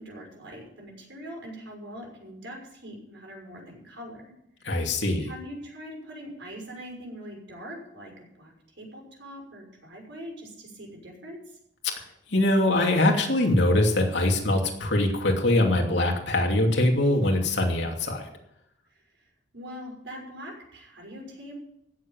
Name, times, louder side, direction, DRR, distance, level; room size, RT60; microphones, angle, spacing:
voice 1, 0.0-4.2 4.7-4.8 5.2-11.6 19.2-19.3 19.5-21.6, equal, 70° right, -1 dB, 6.1 m, -42 dB
voice 2, 4.6-5.3 12.3-18.3, left 1 dB, 65° left, 1 dB, 2.8 m, -23 dB
17.0 x 7.6 x 7.4 m, 0.78 s
head